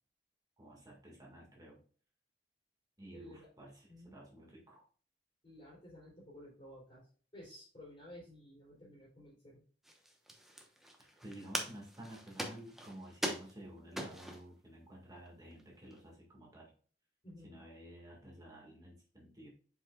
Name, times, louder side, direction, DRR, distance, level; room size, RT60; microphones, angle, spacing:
voice 1, 0.6-1.8 3.0-4.8 11.2-16.7 17.4-19.5, right 1 dB, 20° right, -2 dB, 1.8 m, -52 dB
voice 2, 3.1-3.5 3.9-4.1 5.4-9.6 17.2-17.6, left 1 dB, 30° left, -6 dB, 3.3 m, -54 dB
sound 1, 9.8-14.5 15.2-15.3 15.5-16.0, equal, ahead, 1.0 m, -42 dB
7.4 x 5.5 x 2.3 m, 0.42 s
head